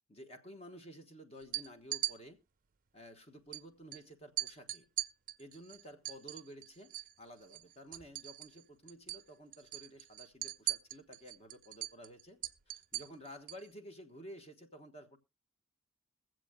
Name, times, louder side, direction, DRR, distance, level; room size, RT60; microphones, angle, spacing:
voice 1, 0.1-2.4 2.9-4.9 5.4-12.4 12.7-15.2, equal, 30° left, 1.2 m, -52 dB
sound 1, 1.4-2.1 3.5-3.6 3.9-4.0 4.4-7.1 7.4-8.6 8.9-9.2 9.5-13.7, right 15 dB, 40° right, 0.5 m, -40 dB
22.5 x 7.6 x 2.2 m
head